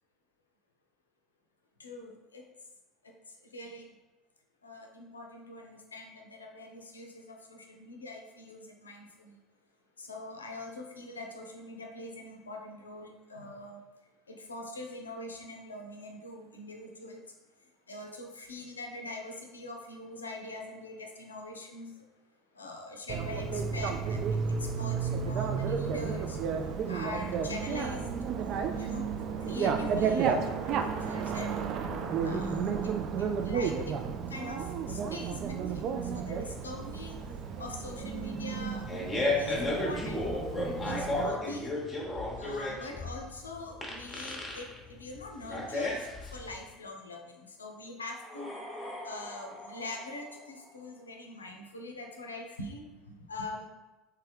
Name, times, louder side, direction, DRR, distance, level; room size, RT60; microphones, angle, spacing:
voice 1, 1.8-2.4 3.0-3.1 3.5-3.9 4.6-9.4 10.0-13.8 14.3-17.2 17.9-22.0 22.5-26.4 26.9-29.1 29.4-31.7 32.2-34.0 34.3-37.2 37.6-38.9 39.4-40.3 40.8-41.7 42.4-48.5 49.0-53.7, left 2 dB, 80° left, 2 dB, 0.5 m, -43 dB
Bicycle, 23.1-41.3, right 6 dB, 45° right, 0.3 m, -32 dB
Fart, 38.6-46.5, left 2 dB, 15° left, 0.9 m, -33 dB
sound 1, 48.1-51.1, left 1 dB, ahead, 1.1 m, -45 dB
3.3 x 3.2 x 3.3 m, 1.1 s
figure-of-eight pair, 65°, 0 cm